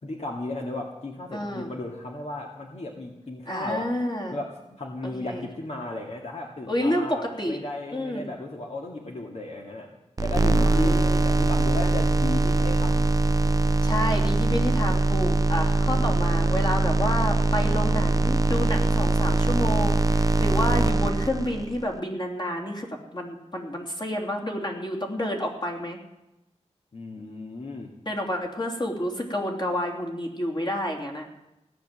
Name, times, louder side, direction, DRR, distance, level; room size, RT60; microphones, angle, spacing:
voice 1, 0.0-3.9 4.3-9.9 10.2-13.1 15.9-16.2 26.9-27.9, left 2 dB, 65° left, 0 dB, 2.1 m, -34 dB
voice 2, 1.3-1.7 3.4-4.4 5.0-5.4 6.7-7.6 7.9-8.3 10.2-11.2 13.8-22.9 23.1-26.0 28.0-31.3, left 1 dB, 40° left, 1 dB, 3.2 m, -29 dB
sound 1, 10.2-21.8, right 2 dB, 30° right, 0.5 m, -22 dB
17.0 x 10.5 x 7.7 m, 0.94 s
wide cardioid pair, 85°, 12 cm